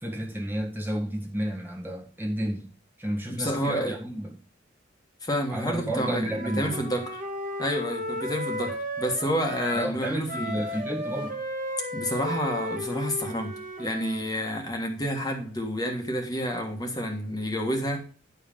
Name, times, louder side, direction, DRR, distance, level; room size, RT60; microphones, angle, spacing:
voice 1, 0.0-2.7 3.0-4.3 5.5-6.8 9.7-11.4, right 1 dB, 10° right, -1 dB, 1.5 m, -31 dB
voice 2, 3.3-3.9 5.2-7.2 7.6-10.6 11.9-13.5 13.8-18.0, equal, 20° left, 3 dB, 1.6 m, -29 dB
Wind instrument woodwind instrument, 6.2-9.9 10.3-14.3, equal, 45° right, 1.9 m, -34 dB
11.0 x 5.5 x 5.3 m, 0.37 s
head